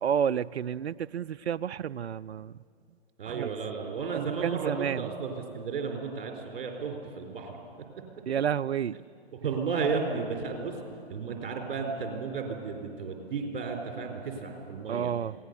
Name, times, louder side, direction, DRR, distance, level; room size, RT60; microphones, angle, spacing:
voice 1, 0.0-2.6 3.3-3.5 4.1-5.1 8.3-9.0 14.9-15.3, right 8 dB, 80° right, 17 dB, 0.5 m, -30 dB
voice 2, 3.2-7.6 9.4-10.8 11.1-15.1, right 5 dB, 50° right, 2 dB, 4.1 m, -33 dB
27.0 x 18.0 x 6.7 m, 2.4 s
figure-of-eight pair, 120°, 32 cm